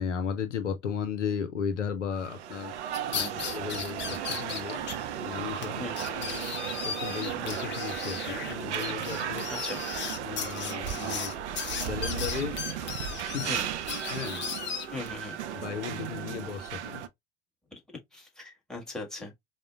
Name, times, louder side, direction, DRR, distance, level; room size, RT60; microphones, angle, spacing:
voice 1, 0.0-4.8 5.2-6.5 6.8-9.5 10.2-11.3 11.8-12.6 13.1-13.5 14.1-14.4 15.5-17.1, left 7 dB, 80° left, 0.6 m, -35 dB
sound 1, 2.1-17.1, right 9 dB, 75° right, 0.5 m, -35 dB
sound 2, 2.9-4.9 5.2-5.3 5.6-5.7 6.0-15.1, left 7 dB, 30° left, 0.8 m, -36 dB
voice 2, 3.1-3.5 5.8-6.1 9.5-9.8 13.5-13.7 14.9-15.4 17.7-17.8 18.1-19.3, left 2 dB, ahead, 1.5 m, -39 dB
4.8 x 2.1 x 2.3 m
figure-of-eight pair, 75°, 35 cm